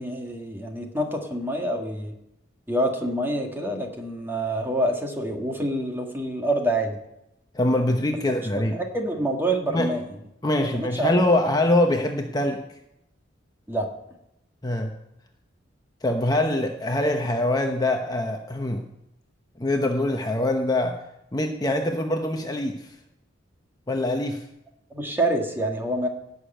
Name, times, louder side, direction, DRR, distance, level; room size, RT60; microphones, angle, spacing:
voice 1, 0.0-2.1 2.7-7.0 8.1-8.2 8.5-10.0 10.7-11.1 13.7-13.9 24.9-26.1, right 1 dB, 10° right, 2 dB, 1.9 m, -27 dB
voice 2, 7.5-8.8 9.7-9.9 10.4-12.6 14.6-14.9 16.0-18.8 19.6-21.0 21.3-22.9 23.9-24.4, left 1 dB, 20° left, 3 dB, 0.9 m, -24 dB
17.0 x 6.7 x 9.0 m, 0.84 s
head